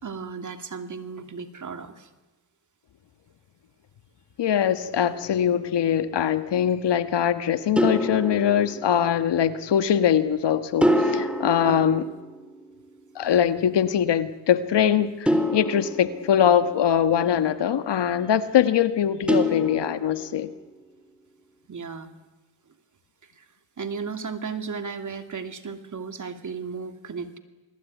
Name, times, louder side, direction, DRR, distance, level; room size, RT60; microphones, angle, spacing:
voice 1, 0.0-2.1 11.6-11.9 21.7-22.1 23.2-23.5 23.8-27.4, right 5 dB, 40° right, 7 dB, 2.7 m, -35 dB
voice 2, 4.4-12.0 13.2-20.5, left 9 dB, 65° left, 10 dB, 1.7 m, -22 dB
sound 1, 5.1-5.6 7.8-9.3 10.8-12.7 15.3-16.9 19.3-20.4, equal, ahead, 3.9 m, -26 dB
28.0 x 20.0 x 9.5 m, 1.2 s
cardioid pair, 80°, 44 cm